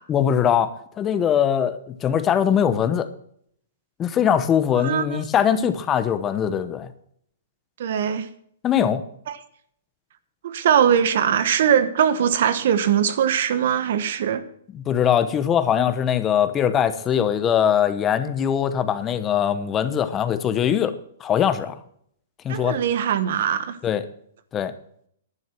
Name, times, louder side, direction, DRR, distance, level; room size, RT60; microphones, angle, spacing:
voice 1, 0.1-3.1 4.0-6.9 8.6-9.0 14.7-20.9 21.2-21.7 22.4-22.8 23.8-24.0 24.5-24.7, left 9 dB, 20° left, 1.0 m, -21 dB
voice 2, 4.8-5.2 7.8-8.3 9.3-9.4 10.4-14.4 22.5-23.8, right 8 dB, 60° right, 1.1 m, -21 dB
11.0 x 9.3 x 6.0 m
hypercardioid pair, 145°, 0 cm